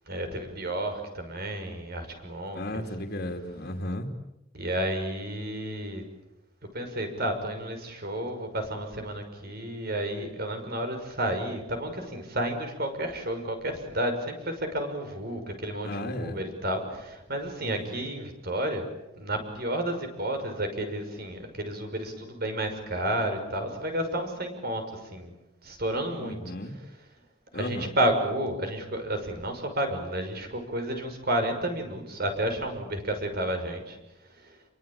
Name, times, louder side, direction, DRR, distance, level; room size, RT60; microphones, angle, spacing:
voice 1, 0.1-2.8 4.5-6.0 6.7-18.9 19.1-25.3 25.6-26.4 26.8-26.9 27.5-34.0 34.3-34.6, right 1 dB, 55° right, 6 dB, 6.1 m, -31 dB
voice 2, 2.5-4.1 15.8-16.4 17.6-18.0 26.2-26.7 27.5-27.9, left 1 dB, 55° left, 4 dB, 2.6 m, -34 dB
28.0 x 23.5 x 8.9 m, 0.93 s
head